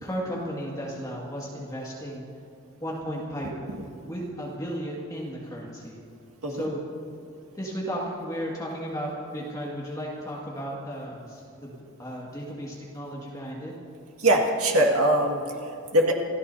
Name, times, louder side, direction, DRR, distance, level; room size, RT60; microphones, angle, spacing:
voice 1, 0.0-2.2 2.8-3.6 4.0-6.0 6.5-6.8 7.5-13.7, equal, 15° left, -4 dB, 2.0 m, -34 dB
voice 2, 14.2-16.1, right 1 dB, 80° right, 1 dB, 2.0 m, -23 dB
27.0 x 14.5 x 2.8 m, 2.5 s
head